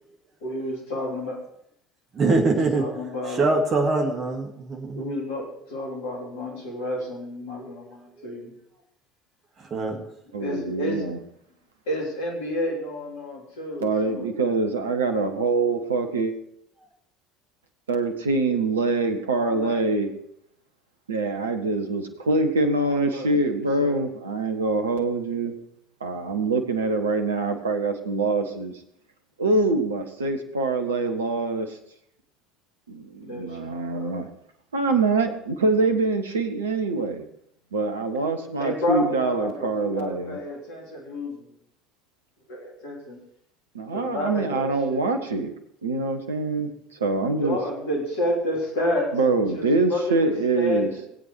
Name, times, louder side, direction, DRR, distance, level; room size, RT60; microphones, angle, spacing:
voice 1, 0.4-1.4 2.2-3.5 4.9-8.6 10.0-11.1 11.9-14.3 19.4-19.8 22.9-24.0 33.2-34.1 38.6-41.6 42.5-43.2 43.9-45.1 47.2-49.1 49.5-51.1, left 1 dB, 65° left, -1 dB, 3.5 m, -30 dB
voice 2, 2.1-2.8 3.3-5.1 7.6-7.7 9.6-10.0, right 3 dB, 35° right, 2 dB, 2.2 m, -23 dB
voice 3, 10.3-11.2 13.8-16.3 17.9-20.1 21.1-25.5 26.0-28.8 29.4-31.8 32.9-34.3 34.7-37.2 37.7-40.4 43.7-45.5 45.8-46.7 47.0-47.6 49.1-50.9, right 3 dB, 75° right, 6 dB, 1.4 m, -24 dB
20.0 x 8.5 x 4.7 m, 0.75 s
figure-of-eight pair, 65°, 0 cm